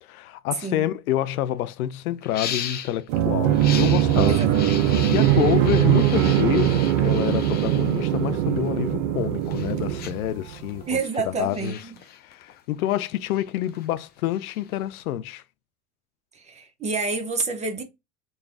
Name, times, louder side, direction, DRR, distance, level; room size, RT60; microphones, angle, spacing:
voice 1, 0.0-4.5 5.1-11.0 11.3-11.8 12.2-15.4, left 13 dB, 75° left, 0.5 m, -27 dB
sound 1, 1.1-1.2 1.4-1.7 2.2-3.0 3.5-8.7 9.2-15.0, left 8 dB, 25° left, 0.5 m, -37 dB
sound 2, 3.1-10.7, right 11 dB, 60° right, 0.7 m, -21 dB
voice 2, 4.3-4.8 10.9-11.9 16.3-17.8, right 4 dB, 15° right, 0.7 m, -28 dB
3.9 x 2.3 x 3.5 m
hypercardioid pair, 105°, 43 cm